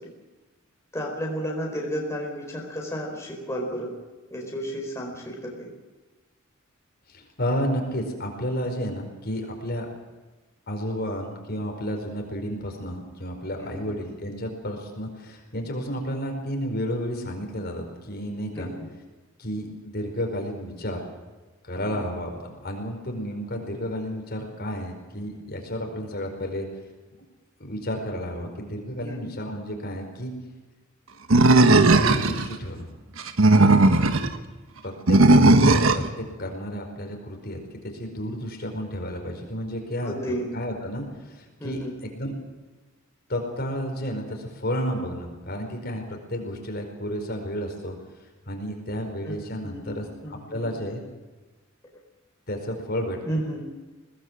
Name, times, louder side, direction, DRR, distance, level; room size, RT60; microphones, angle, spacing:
voice 1, 0.9-3.9 4.3-5.7 13.6-13.8 18.5-18.9 21.8-22.0 29.0-29.3 33.5-33.8 40.0-40.5 41.6-41.9 49.2-49.4 49.6-50.9 53.3-53.6, equal, 15° left, -1 dB, 4.6 m, -33 dB
voice 2, 7.1-9.9 10.7-18.7 19.4-21.0 21.6-26.7 27.6-30.3 31.8-32.8 34.8-41.8 42.2-42.3 43.3-47.9 48.5-51.0 52.5-53.2, equal, 50° left, 2 dB, 5.1 m, -32 dB
Animal, 31.3-32.5 33.2-34.3 35.1-36.1, right 2 dB, 80° right, 1.4 m, -16 dB
23.0 x 19.0 x 7.7 m, 1.3 s
head